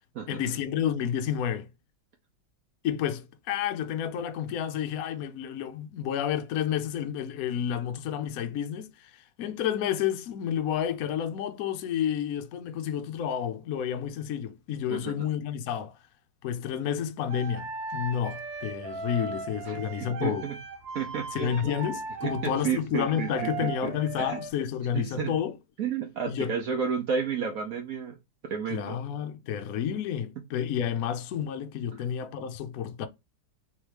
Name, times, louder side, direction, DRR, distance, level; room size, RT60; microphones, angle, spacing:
voice 1, 0.3-1.7 2.8-16.0 16.4-20.4 21.3-25.5 26.3-26.5 28.7-33.1, left 9 dB, 70° left, 0.8 m, -30 dB
voice 2, 14.9-15.3 19.7-20.6 20.9-21.5 22.2-23.9 24.2-24.4 24.9-25.4 25.8-28.2 28.4-29.0, right 6 dB, 65° right, 0.9 m, -32 dB
sound 1, 17.3-24.5, right 4 dB, 85° right, 1.8 m, -38 dB
3.5 x 3.1 x 3.2 m
omnidirectional pair, 2.0 m